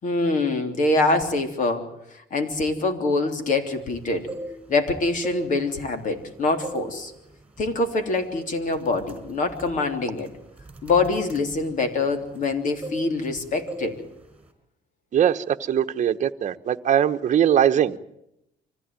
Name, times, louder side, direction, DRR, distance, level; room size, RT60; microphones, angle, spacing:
voice 1, 0.0-1.9 2.3-4.3 4.7-7.1 7.6-10.3 10.8-14.0, left 3 dB, 50° left, 3.5 m, -24 dB
sound 1, 4.1-4.8 5.2-6.2 6.6-7.0 7.3-7.6 8.2-8.4 8.7-12.5 12.8-13.4 13.7-14.0 14.2-14.5, right 1 dB, 5° right, 5.1 m, -38 dB
voice 2, 15.1-18.0, right 9 dB, 45° right, 1.1 m, -21 dB
25.0 x 16.0 x 9.0 m
cardioid pair, 110°, 17 cm